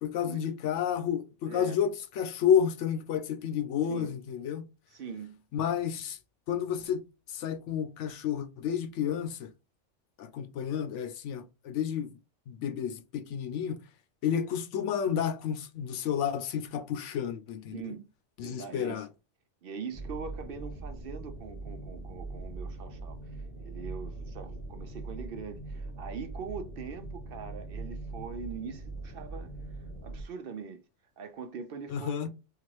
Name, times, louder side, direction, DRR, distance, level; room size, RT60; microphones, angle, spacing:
voice 1, 0.0-4.6 5.5-6.2 6.5-7.0 7.3-9.5 10.2-12.1 12.5-13.8 14.2-17.9 18.4-19.1 31.9-32.3, left 8 dB, 85° left, 1.0 m, -30 dB
voice 2, 1.5-1.8 3.9-4.2 4.9-5.4 17.7-18.1 18.4-19.1 19.6-30.8 31.2-32.1, right 5 dB, 60° right, 0.7 m, -42 dB
sound 1, 19.9-30.2, right 2 dB, 55° left, 1.2 m, -41 dB
3.6 x 2.5 x 3.1 m
omnidirectional pair, 1.2 m